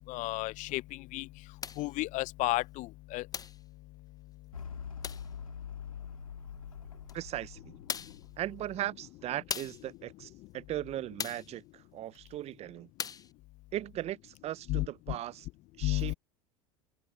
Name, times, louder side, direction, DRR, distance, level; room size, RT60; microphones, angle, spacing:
voice 1, 0.1-0.8 1.1-1.3 1.8-3.2 14.7-14.9 15.8-16.1, left 20 dB, 50° left, 0.7 m, -32 dB
sound 1, 1.6-1.9 3.3-3.6 5.0-5.3 7.1-7.2 7.9-8.3 9.5-9.9 11.2-11.5 13.0-13.3, left 6 dB, 20° left, 0.9 m, -38 dB
sound 2, 4.5-9.1, left 6 dB, 90° left, 1.9 m, -45 dB
voice 2, 7.1-7.8 8.4-12.9 13.7-15.5 15.8-16.1, right 13 dB, 40° right, 0.7 m, -38 dB
hypercardioid pair, 80°, 17 cm